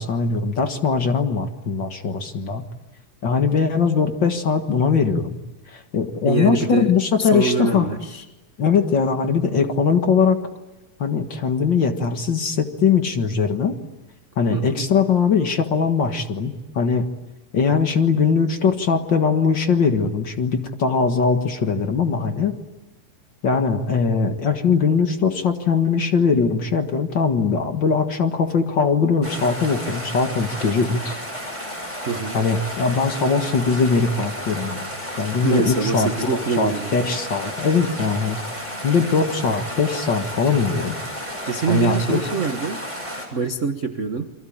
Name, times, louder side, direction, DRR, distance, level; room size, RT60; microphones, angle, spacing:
voice 1, 0.0-2.6 3.2-5.4 5.7-7.9 8.6-10.4 11.0-13.8 14.4-17.1 17.5-22.5 23.4-31.2 32.3-34.9 35.2-38.4 38.8-40.9 41.7-42.2, left 5 dB, 45° left, 6 dB, 2.0 m, -21 dB
voice 2, 6.2-6.9 7.2-8.2 14.5-14.8 32.1-32.4 35.4-37.0 41.5-42.8 43.3-44.3, right 5 dB, 50° right, 6 dB, 0.8 m, -24 dB
sound 1, 29.2-43.3, equal, 10° left, 6.4 m, -32 dB
29.0 x 23.5 x 8.8 m, 1.0 s
omnidirectional pair, 3.3 m